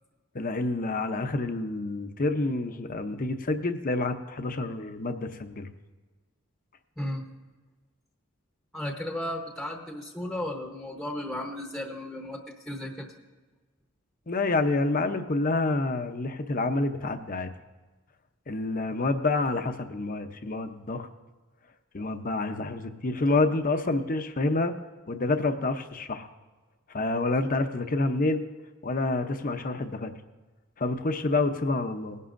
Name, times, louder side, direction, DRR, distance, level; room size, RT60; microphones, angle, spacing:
voice 1, 0.3-5.7 14.3-17.5 18.5-21.1 21.9-24.7 25.1-26.3 26.9-28.4 28.8-30.1 30.8-32.2, left 2 dB, 40° left, 8 dB, 0.7 m, -28 dB
voice 2, 8.7-13.1, left 1 dB, ahead, 1 dB, 0.9 m, -34 dB
19.5 x 11.0 x 2.6 m, 1.3 s
head